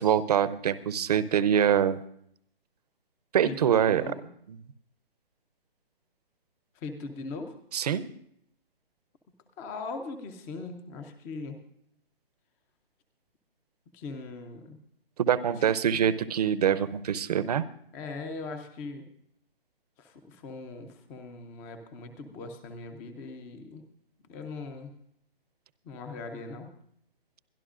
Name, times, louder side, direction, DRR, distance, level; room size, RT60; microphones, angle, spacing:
voice 1, 0.0-2.0 3.3-4.0 7.7-8.1 15.2-17.6, right 9 dB, 40° right, 16 dB, 0.8 m, -24 dB
voice 2, 3.4-4.3 6.8-7.5 9.6-11.6 13.9-14.8 15.5-16.1 17.9-19.1 20.0-23.8 24.3-24.9 25.8-26.7, left 3 dB, 5° left, 7 dB, 0.5 m, -40 dB
23.0 x 12.5 x 2.5 m, 0.70 s
hypercardioid pair, 155°, 30 cm